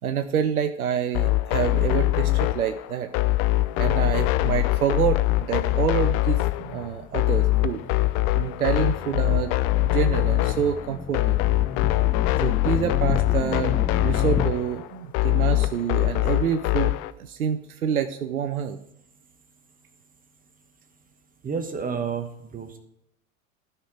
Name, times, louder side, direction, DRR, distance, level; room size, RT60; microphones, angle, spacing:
voice 1, 0.0-3.1 3.8-7.8 8.4-9.5 9.8-11.4 12.4-16.9 17.2-18.8, right 8 dB, 90° right, 7 dB, 0.7 m, -27 dB
sound 1, 1.1-17.1, left 18 dB, 45° left, 0.6 m, -23 dB
sound 2, 5.5-14.5, left 4 dB, 10° left, 1.1 m, -35 dB
voice 2, 21.4-22.8, right 6 dB, 20° right, 7 dB, 1.2 m, -30 dB
12.5 x 5.9 x 5.0 m, 0.78 s
hypercardioid pair, 90°, 42 cm